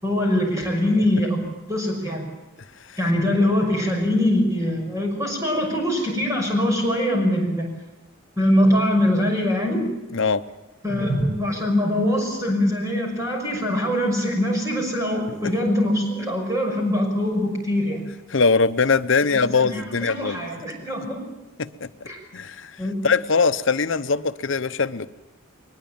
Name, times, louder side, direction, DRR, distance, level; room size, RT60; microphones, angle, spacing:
voice 1, 0.0-2.2 3.0-7.7 8.4-9.9 10.8-18.0 19.3-21.3 22.1-22.2 22.8-23.0, left 1 dB, 15° right, 1 dB, 6.0 m, -23 dB
voice 2, 18.3-20.4 21.6-21.9 22.3-22.8 23.0-25.1, left 4 dB, 60° left, 12 dB, 0.8 m, -21 dB
22.0 x 20.0 x 8.9 m, 1.0 s
head